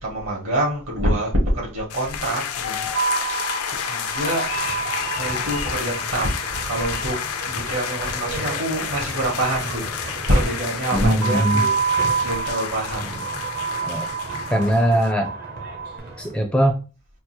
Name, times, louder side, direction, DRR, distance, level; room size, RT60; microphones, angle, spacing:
voice 1, 0.0-2.9 3.9-4.6 5.2-6.3 6.7-11.8 12.2-13.3, right 1 dB, 70° right, 2.1 m, -25 dB
sound 1, 1.9-15.1, left 8 dB, 90° left, 0.5 m, -30 dB
sound 2, 2.9-8.3 11.2-16.0, right 6 dB, 85° right, 1.3 m, -28 dB
sound 3, 4.2-16.3, right 3 dB, 45° right, 0.7 m, -37 dB
voice 2, 10.9-11.7 13.8-14.1 14.5-15.3 16.2-16.9, equal, 5° left, 0.4 m, -20 dB
4.4 x 2.0 x 4.3 m
head